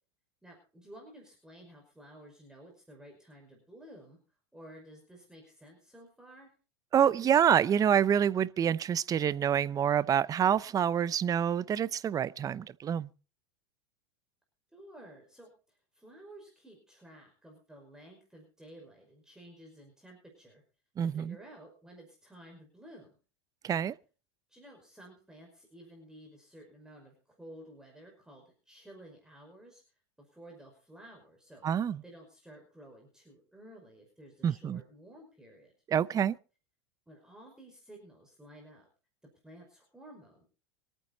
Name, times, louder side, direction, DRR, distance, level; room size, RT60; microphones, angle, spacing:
voice 1, 0.4-4.2 4.5-6.5 14.7-20.6 21.0-23.2 24.5-35.7 37.1-38.9 39.4-40.5, right 1 dB, 5° right, 5.5 m, -53 dB
voice 2, 6.9-13.1 21.0-21.3 23.6-23.9 31.6-32.0 34.4-34.8 35.9-36.4, right 9 dB, 25° right, 0.7 m, -27 dB
25.0 x 9.3 x 4.2 m
hypercardioid pair, 110°, 14 cm